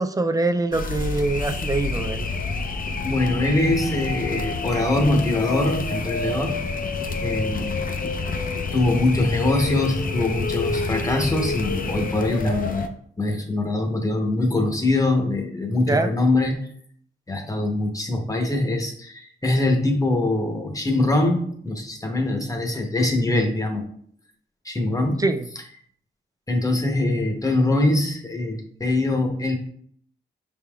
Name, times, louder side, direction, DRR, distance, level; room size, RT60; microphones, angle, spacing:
voice 1, 0.0-2.3 15.9-16.1 25.2-25.5, right 2 dB, 20° right, 8 dB, 0.3 m, -24 dB
sound 1, 0.7-12.9, left 3 dB, 45° left, 0.5 m, -28 dB
voice 2, 3.0-6.6 7.2-7.8 8.7-12.8 13.2-16.6 17.3-23.8 24.6-25.2 26.5-29.5, left 2 dB, 15° left, 3 dB, 0.8 m, -23 dB
5.4 x 3.5 x 2.3 m, 0.62 s
cardioid pair, 95°, 20 cm